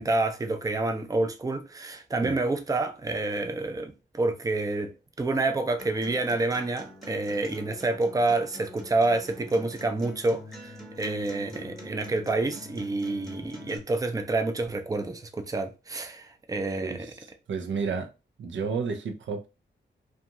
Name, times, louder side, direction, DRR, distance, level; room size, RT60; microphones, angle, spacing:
voice 1, 0.0-4.9 5.2-17.1, right 2 dB, 20° right, 0.5 m, -28 dB
Acoustic guitar, 5.8-13.8, equal, ahead, 0.9 m, -45 dB
voice 2, 16.8-18.1 18.4-19.5, right 5 dB, 75° right, 0.5 m, -32 dB
2.5 x 2.3 x 2.8 m
cardioid pair, 70°, 20 cm